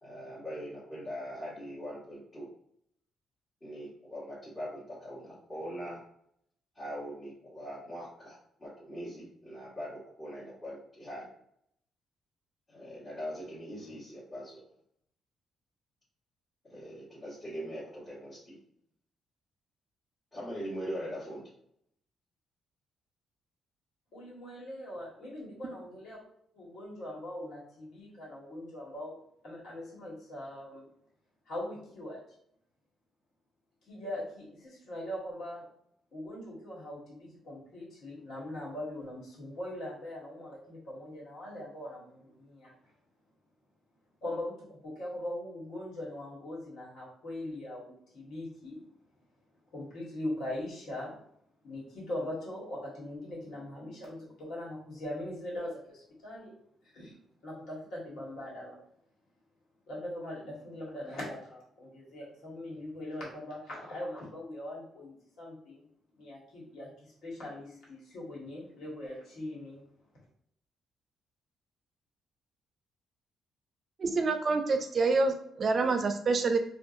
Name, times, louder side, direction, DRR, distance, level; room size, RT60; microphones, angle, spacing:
voice 1, 0.0-2.5 3.6-6.0 6.7-11.3 12.7-14.6 16.6-18.6 20.3-21.4, equal, 25° left, -11 dB, 1.4 m, -41 dB
voice 2, 24.1-26.2 26.5-29.2 29.4-30.8 31.5-32.2 33.9-35.6 36.1-42.7 44.2-48.8 49.7-51.1 51.6-56.5 56.8-57.1 57.4-58.8 59.9-65.8 66.2-69.8, left 1 dB, 75° left, -5 dB, 1.4 m, -41 dB
voice 3, 74.0-76.6, right 3 dB, 45° right, 7 dB, 0.4 m, -27 dB
2.6 x 2.3 x 2.5 m, 0.70 s
cardioid pair, 90°, 0 cm